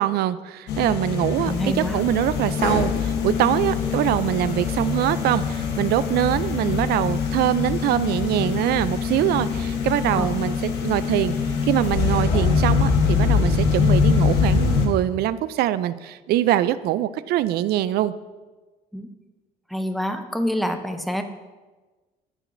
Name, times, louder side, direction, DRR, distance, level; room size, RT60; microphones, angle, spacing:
voice 1, 0.0-10.5 10.8-11.3 11.7-18.1, right 13 dB, 70° right, 15 dB, 0.4 m, -23 dB
sound 1, 0.7-14.9, left 5 dB, 90° left, 1.1 m, -23 dB
voice 2, 1.4-2.0 10.1-10.3 18.9-19.1 19.7-21.2, equal, ahead, 6 dB, 0.6 m, -26 dB
14.0 x 4.9 x 2.6 m, 1.3 s
cardioid pair, 110°, 17 cm